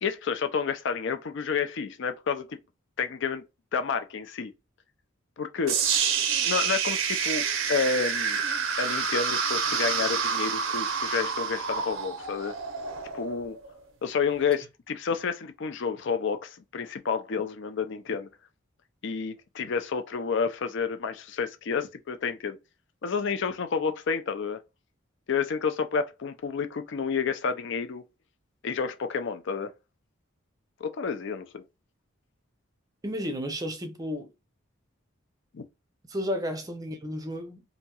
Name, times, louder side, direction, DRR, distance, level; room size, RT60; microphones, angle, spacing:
voice 1, 0.0-2.6 3.0-3.5 3.7-4.5 5.4-5.9 6.4-8.4 8.8-12.6 13.1-13.6 14.0-18.3 19.0-22.6 23.0-24.6 25.3-28.0 28.6-29.7 30.8-31.6 35.5-35.6, left 5 dB, 60° left, 0.5 m, -30 dB
sound 1, 5.7-13.7, right 6 dB, 70° right, 0.6 m, -28 dB
voice 2, 33.0-34.3 36.1-37.6, equal, 20° right, 0.5 m, -32 dB
2.9 x 2.7 x 2.3 m
head